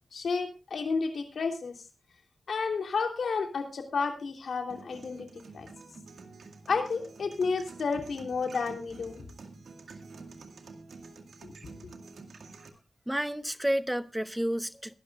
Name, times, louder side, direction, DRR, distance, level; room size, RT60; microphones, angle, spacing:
voice 1, 0.1-1.8 2.5-5.3 5.5-5.7 6.7-9.2 11.4-11.5, left 4 dB, 85° left, 3.1 m, -31 dB
sound 1, 4.7-12.7, right 4 dB, 85° right, 2.2 m, -49 dB
voice 2, 13.1-14.9, equal, 5° right, 0.8 m, -30 dB
22.5 x 12.0 x 2.4 m
wide cardioid pair, 85°, 0 cm